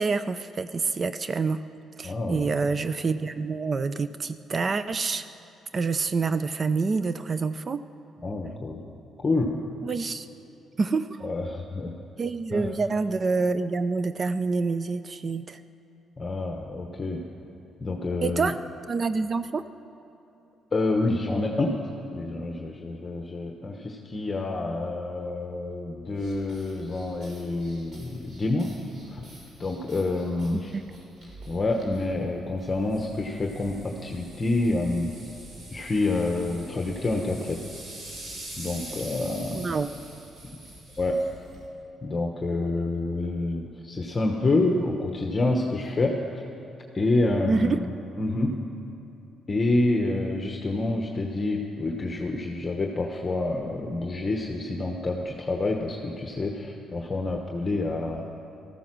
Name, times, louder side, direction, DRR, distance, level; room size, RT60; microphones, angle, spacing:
voice 1, 0.0-1.6 2.0-5.3 5.7-7.8 9.8-10.3 10.8-11.2 12.2-15.6 18.2-18.5 18.9-19.6 30.5-30.8 39.6-39.9 47.5-47.8, right 4 dB, 40° right, 13 dB, 0.4 m, -27 dB
voice 2, 2.0-2.8 8.2-8.8 9.2-9.6 11.2-11.9 12.5-12.7 16.2-17.2 17.8-18.5 20.7-28.7 29.1-29.2 29.6-30.8 31.5-35.1 35.7-37.6 38.6-39.8 41.0-41.2 42.0-46.4 46.9-48.6 49.5-58.2, left 2 dB, 30° left, 2 dB, 1.1 m, -28 dB
sound 1, 26.1-41.7, right 1 dB, 55° right, 3.6 m, -45 dB
14.5 x 14.0 x 6.1 m, 2.7 s
cardioid pair, 90°, 0 cm